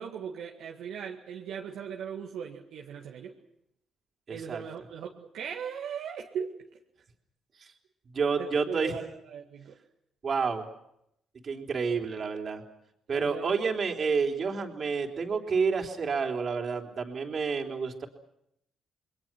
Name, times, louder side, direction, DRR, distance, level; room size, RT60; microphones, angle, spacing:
voice 1, 0.0-3.4 4.3-6.5 8.4-9.8 13.1-13.5, right 7 dB, 80° right, 0 dB, 1.9 m, -38 dB
voice 2, 4.3-4.6 7.6-7.7 8.1-8.9 10.2-10.6 11.4-12.6 13.1-18.1, right 5 dB, 50° right, 3 dB, 3.6 m, -29 dB
28.5 x 21.5 x 6.1 m, 0.78 s
supercardioid pair, 60°, 0 cm